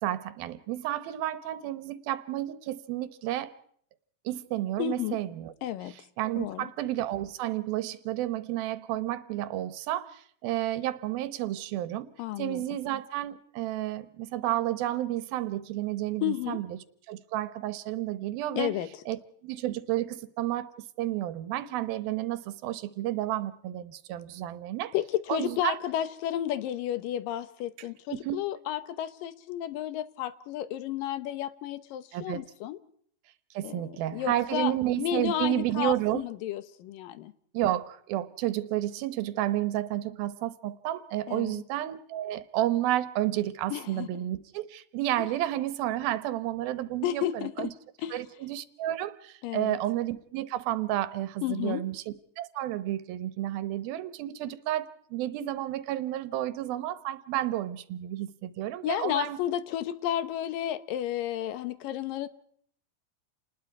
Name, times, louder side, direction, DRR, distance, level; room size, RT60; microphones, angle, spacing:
voice 1, 0.0-3.5 4.2-5.5 6.2-16.8 17.1-18.7 19.1-20.7 21.0-24.9 25.3-25.8 28.1-28.4 32.1-32.4 33.5-36.2 37.5-47.7 48.1-52.0 52.4-59.4, right 13 dB, 85° right, 2.9 m, -31 dB
voice 2, 4.8-5.2 5.6-6.0 6.4-6.7 12.2-12.6 16.2-16.6 18.6-18.9 24.9-32.8 33.6-37.3 41.3-41.6 43.7-44.1 45.2-45.3 47.0-47.7 48.0-48.2 49.4-49.8 51.4-51.9 58.8-62.3, left 12 dB, 75° left, 2.6 m, -32 dB
29.5 x 20.0 x 4.8 m
omnidirectional pair, 4.1 m